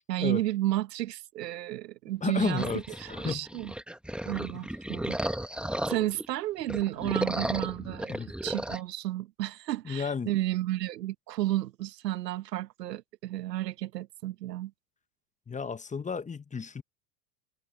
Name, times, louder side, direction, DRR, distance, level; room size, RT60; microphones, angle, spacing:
voice 1, 0.0-2.7 3.0-3.7 4.3-5.2 5.9-14.7, right 15 dB, 80° right, 1.1 m, -32 dB
voice 2, 2.2-3.5 4.5-4.6 8.1-8.3 9.8-10.3 15.5-16.8, left 5 dB, 15° left, 1.2 m, -32 dB
sound 1, 2.4-6.3 6.6-8.8, right 1 dB, ahead, 1.3 m, -34 dB
hypercardioid pair, 95°, 48 cm